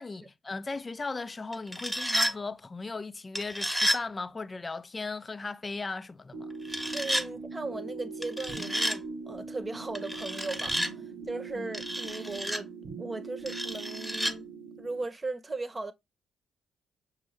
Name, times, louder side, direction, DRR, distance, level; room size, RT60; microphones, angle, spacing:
voice 1, 0.0-6.5 11.5-11.7, left 3 dB, 30° left, 0.5 m, -37 dB
sound 1, 1.5-2.3 3.3-4.0 6.6-7.3 8.2-9.0 9.9-10.9 11.7-12.6 13.5-14.3, equal, 5° right, 1.0 m, -31 dB
sound 2, 6.3-15.0, right 4 dB, 70° right, 1.0 m, -41 dB
voice 2, 6.9-12.7 13.0-14.5 14.8-15.9, right 3 dB, 30° right, 0.9 m, -37 dB
6.1 x 2.7 x 3.1 m
hypercardioid pair, 45°, 0 cm